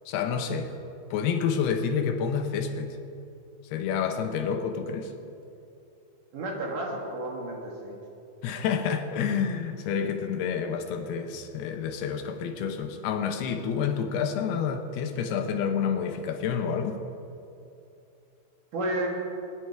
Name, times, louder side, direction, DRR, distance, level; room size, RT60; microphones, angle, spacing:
voice 1, 0.1-0.7 1.1-3.0 3.7-5.1 8.4-17.0, left 7 dB, 85° left, 5 dB, 3.0 m, -29 dB
voice 2, 6.3-8.0 18.7-19.1, right 1 dB, 60° right, -1 dB, 3.0 m, -31 dB
21.0 x 10.0 x 4.7 m, 2.7 s
omnidirectional pair, 4.6 m